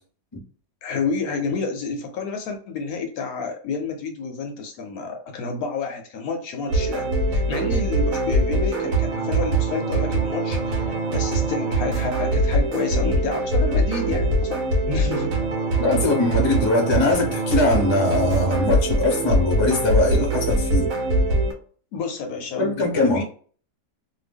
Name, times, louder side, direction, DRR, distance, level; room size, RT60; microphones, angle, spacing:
voice 1, 0.8-15.4 21.9-23.2, left 4 dB, 70° left, 4 dB, 1.0 m, -29 dB
sound 1, 6.7-21.5, right 2 dB, 60° right, 1.1 m, -23 dB
voice 2, 15.8-20.9 22.6-23.2, left 2 dB, 30° left, 0 dB, 0.5 m, -21 dB
2.8 x 2.2 x 3.4 m, 0.43 s
omnidirectional pair, 1.8 m